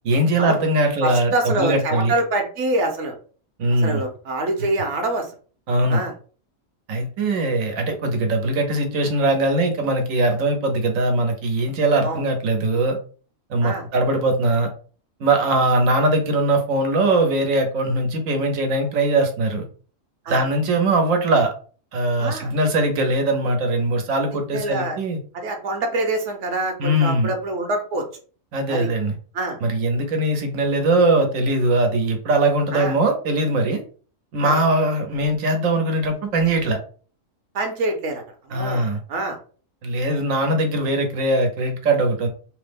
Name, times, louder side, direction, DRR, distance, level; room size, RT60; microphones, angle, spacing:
voice 1, 0.0-2.1 3.6-4.0 5.7-6.0 6.9-13.0 13.5-14.7 15.2-19.6 20.3-21.5 21.9-25.2 26.8-27.3 28.5-29.2 29.6-33.8 34.3-36.8 38.5-39.0 39.8-42.3, right 2 dB, 90° right, 4 dB, 1.2 m, -21 dB
voice 2, 1.0-3.1 3.8-5.3 5.9-6.1 12.0-12.2 13.6-13.9 20.3-20.4 22.2-22.5 24.5-25.0 25.3-28.0 28.7-28.9 29.3-29.6 32.7-32.9 34.4-34.5 37.5-38.2 38.5-38.8 39.1-39.4, right 2 dB, 70° right, 4 dB, 1.0 m, -25 dB
3.1 x 2.0 x 3.4 m, 0.40 s
omnidirectional pair, 1.4 m